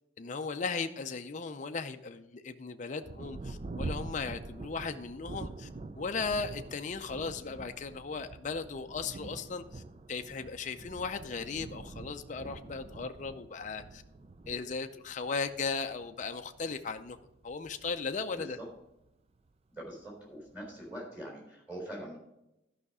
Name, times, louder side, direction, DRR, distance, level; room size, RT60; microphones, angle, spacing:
voice 1, 0.2-5.7 5.9-9.8 10.1-14.0 14.5-17.2 17.4-18.6, left 4 dB, 40° left, 7 dB, 0.5 m, -37 dB
Thunder, 3.0-19.1 19.9-20.0 20.5-20.9, right 2 dB, 30° right, 0.4 m, -45 dB
voice 2, 18.4-18.7 19.7-22.2, right 1 dB, 10° right, -4 dB, 3.9 m, -43 dB
12.0 x 5.7 x 4.9 m, 0.88 s
head